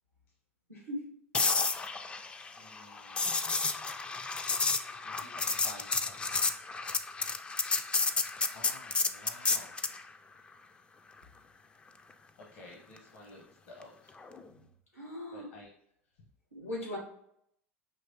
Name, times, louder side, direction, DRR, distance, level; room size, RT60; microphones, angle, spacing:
voice 1, 0.7-1.1 14.9-15.5 16.5-17.0, left 1 dB, 85° left, -3 dB, 1.7 m, -39 dB
sound 1, 1.3-10.0 14.2-14.4, left 4 dB, 15° left, 0.3 m, -31 dB
voice 2, 2.6-3.3 4.6-6.5 7.7-10.0 12.5-14.1 15.3-15.7, left 2 dB, 60° left, -2 dB, 0.9 m, -53 dB
5.7 x 3.1 x 2.7 m, 0.73 s
figure-of-eight pair, 75°, 7 cm